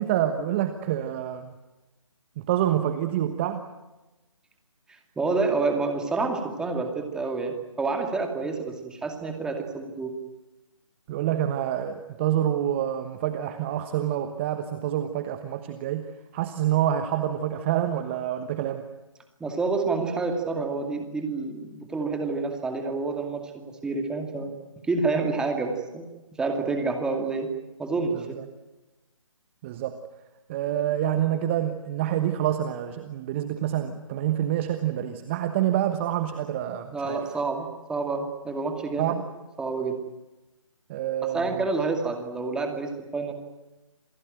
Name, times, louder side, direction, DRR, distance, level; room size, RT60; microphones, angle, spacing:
voice 1, 0.0-1.5 2.4-3.6 11.1-16.1 16.3-18.9 28.1-28.4 29.6-30.0 30.5-37.2 39.0-39.2 40.9-41.6, right 11 dB, 25° right, 9 dB, 1.2 m, -27 dB
voice 2, 5.2-10.1 19.4-26.1 26.4-27.5 27.8-28.3 36.9-39.2 39.6-40.0 41.3-43.3, right 3 dB, 5° right, 4 dB, 2.4 m, -28 dB
28.0 x 18.5 x 9.1 m, 1.1 s
figure-of-eight pair, 150°, 17 cm